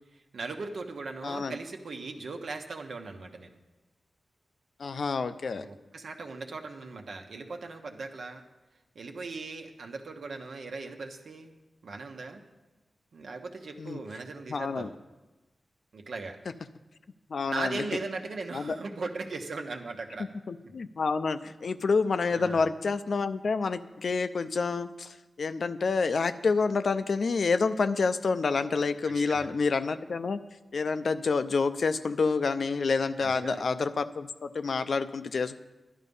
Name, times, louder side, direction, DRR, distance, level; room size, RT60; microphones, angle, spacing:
voice 1, 0.3-3.6 5.6-8.4 8.9-11.5 11.8-12.4 13.1-15.0 15.9-16.4 17.4-20.3 20.6-20.7 22.3-22.6 29.1-29.5 33.2-33.6, right 3 dB, 75° right, 4 dB, 1.2 m, -38 dB
voice 2, 1.2-1.5 4.8-5.7 13.8-14.0 14.5-14.9 17.3-17.8 18.5-18.8 20.5-30.4 30.7-35.6, left 4 dB, 70° left, 12 dB, 0.5 m, -28 dB
11.0 x 11.0 x 5.4 m, 1.1 s
wide cardioid pair, 80°, 0 cm